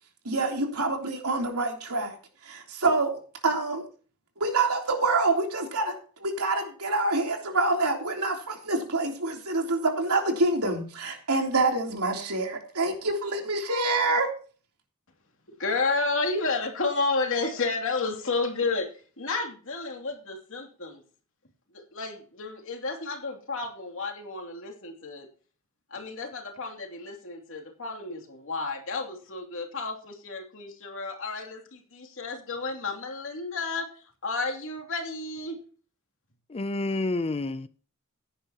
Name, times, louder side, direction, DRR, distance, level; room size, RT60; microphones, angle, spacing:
voice 1, 0.2-2.2 2.4-3.8 4.4-14.4, right 2 dB, 85° right, 3.3 m, -26 dB
voice 2, 15.6-18.9 19.2-21.0 21.7-25.3 25.9-33.9 34.2-35.6, left 3 dB, 65° left, 2.8 m, -31 dB
voice 3, 36.5-37.7, left 2 dB, 25° left, 0.5 m, -29 dB
16.0 x 10.0 x 3.0 m
head